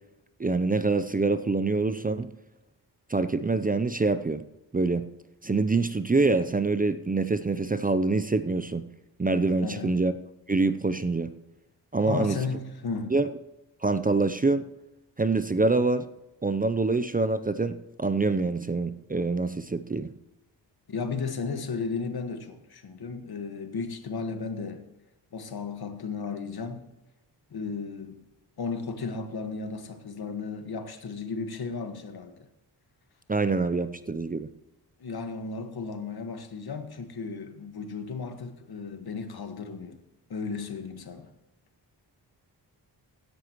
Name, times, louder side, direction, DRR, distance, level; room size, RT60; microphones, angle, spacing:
voice 1, 0.4-2.3 3.1-4.4 4.7-5.0 5.4-8.8 9.2-10.1 10.5-11.3 11.9-12.4 13.1-13.3 13.8-14.6 15.2-16.1 16.4-20.1 33.3-34.5, right 3 dB, 20° right, 0.6 m, -25 dB
voice 2, 9.6-9.9 12.0-13.1 20.9-24.9 25.3-26.9 27.5-28.2 28.6-32.5 35.0-40.0 40.3-41.3, left 4 dB, 60° left, 1.7 m, -34 dB
16.0 x 10.5 x 3.1 m
cardioid pair, 65°, 43 cm